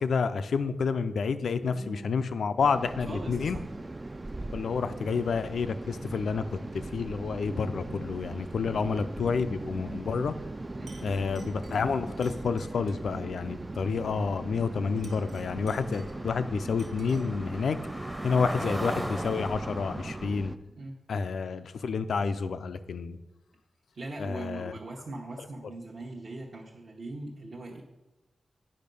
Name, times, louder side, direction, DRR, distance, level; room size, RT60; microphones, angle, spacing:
voice 1, 0.0-3.6 4.5-6.4 6.9-10.3 11.0-17.8 18.2-20.5 21.1-23.2 24.2-24.8, left 5 dB, 85° left, 11 dB, 0.5 m, -29 dB
voice 2, 1.6-2.1 3.1-3.6 6.0-6.1 7.9-8.0 10.8-11.0 18.3-18.5 20.7-21.0 23.9-27.8, right 2 dB, 50° right, -3 dB, 1.0 m, -41 dB
sound 1, 2.6-20.6, right 2 dB, 20° right, 0.3 m, -39 dB
Chink clink, 10.9-13.1 14.9-16.4 16.8-17.4, right 3 dB, 70° right, 1.4 m, -56 dB
sound 2, 13.9-14.0 14.2-20.3, equal, 5° right, 0.7 m, -39 dB
8.6 x 5.5 x 5.3 m, 1.0 s
wide cardioid pair, 140°, 0 cm